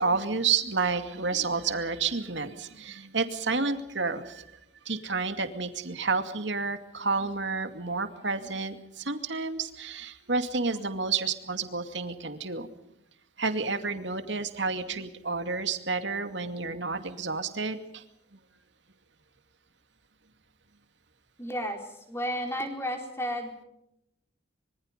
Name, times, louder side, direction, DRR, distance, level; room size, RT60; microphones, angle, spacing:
voice 1, 0.0-4.4 4.9-12.7 13.4-18.0, right 4 dB, 70° right, 8 dB, 2.4 m, -30 dB
voice 2, 21.4-21.8 22.1-23.7, equal, 15° left, 3 dB, 4.5 m, -32 dB
25.5 x 24.5 x 5.3 m, 0.80 s
head